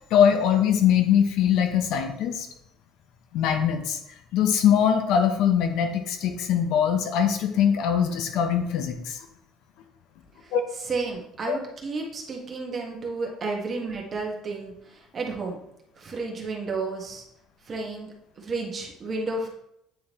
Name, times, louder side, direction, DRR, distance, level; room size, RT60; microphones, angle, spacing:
voice 1, 0.0-2.5 3.3-4.0 4.3-9.2 10.5-10.6 11.5-11.6, left 8 dB, 70° left, 6 dB, 0.9 m, -22 dB
voice 2, 10.9-15.6 16.0-17.2 17.6-19.5, right 3 dB, 35° right, 0 dB, 1.6 m, -32 dB
9.2 x 3.7 x 3.1 m, 0.77 s
cardioid pair, 105°, 0 cm